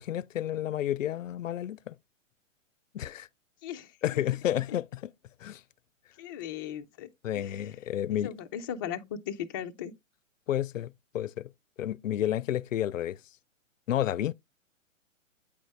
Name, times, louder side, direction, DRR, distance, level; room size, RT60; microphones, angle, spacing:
voice 1, 0.0-1.9 2.9-3.3 4.0-5.1 5.4-5.6 7.2-8.3 10.5-11.5 11.8-13.2 13.9-14.3, left 11 dB, 75° left, 0.5 m, -31 dB
voice 2, 3.6-4.0 4.5-4.6 6.2-7.1 7.3-7.7 8.1-9.9, left 9 dB, 20° left, 0.4 m, -38 dB
8.7 x 5.0 x 3.3 m
figure-of-eight pair, 120°, 39 cm